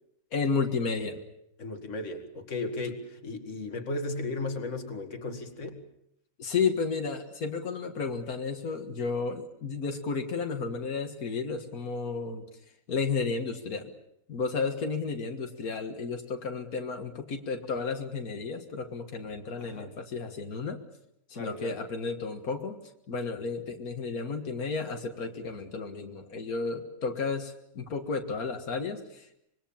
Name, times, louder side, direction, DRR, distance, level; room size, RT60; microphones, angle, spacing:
voice 1, 0.3-1.2 6.4-12.5 12.9-13.9 14.3-20.8 21.3-22.8 23.1-29.4, left 4 dB, 90° left, 4 dB, 2.2 m, -32 dB
voice 2, 1.6-5.8 19.6-19.9 21.3-21.8, left 2 dB, 55° left, 5 dB, 2.4 m, -35 dB
25.5 x 22.5 x 7.2 m, 0.76 s
omnidirectional pair, 1.5 m